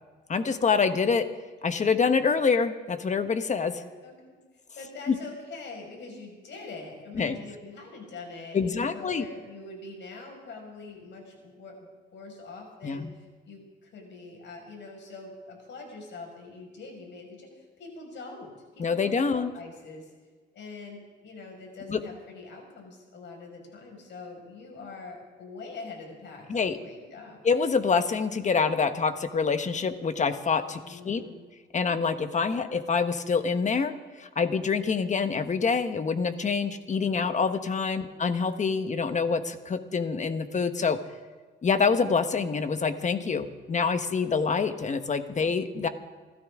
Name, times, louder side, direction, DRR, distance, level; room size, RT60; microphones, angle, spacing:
voice 1, 0.3-1.3 1.6-3.7 5.1-5.2 7.1-7.4 8.5-9.2 12.8-13.1 18.8-19.5 21.9-22.0 26.5-26.8 27.4-31.2 31.7-41.0 41.6-45.9, left 5 dB, 35° left, 9 dB, 1.2 m, -26 dB
voice 2, 3.7-4.4 4.8-20.1 20.5-27.4 30.8-31.4 37.0-37.3 37.9-38.1 45.8-45.9, left 3 dB, 65° left, 1 dB, 5.5 m, -44 dB
28.0 x 13.0 x 3.7 m, 1.4 s
cardioid pair, 90°, 20 cm